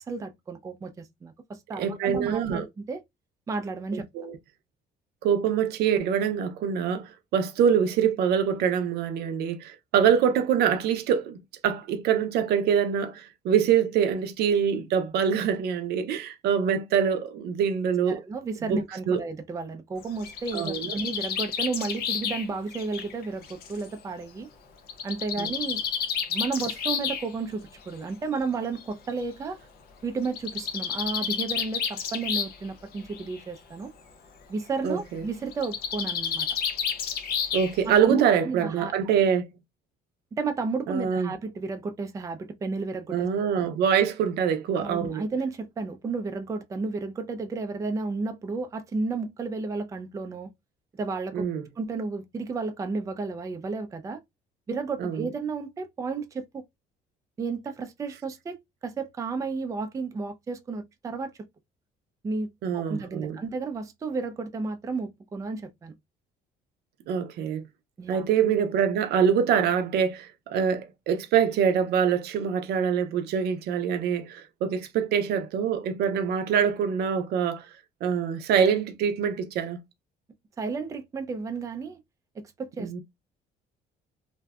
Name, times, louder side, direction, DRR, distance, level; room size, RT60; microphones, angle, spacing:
voice 1, 0.1-3.0 3.5-4.1 18.1-24.5 25.0-25.8 26.3-29.6 30.0-33.9 34.5-36.5 37.9-38.9 40.3-43.3 43.6-43.7 44.7-50.5 50.9-51.5 51.8-54.2 54.7-56.6 57.4-58.6 58.8-61.3 62.2-65.9 68.0-68.3 80.6-82.0 82.4-83.0, right 4 dB, 20° right, 0.3 m, -32 dB
voice 2, 1.8-2.7 3.9-4.4 5.2-18.2 18.7-19.2 20.5-21.0 25.4-25.5 34.8-35.2 37.5-39.5 40.9-41.3 43.1-45.2 51.3-51.6 55.0-55.2 62.6-63.4 67.1-67.6 68.1-77.6 78.0-79.8 82.8-83.0, right 7 dB, 70° right, 0.5 m, -25 dB
Bird, 20.0-23.8 24.9-27.2 28.3-28.4 28.8-28.9 29.1-29.2 30.2-32.7 33.0-33.4 35.5-37.9, left 7 dB, 65° left, 0.5 m, -31 dB
2.6 x 2.1 x 2.2 m
cardioid pair, 110°, 17 cm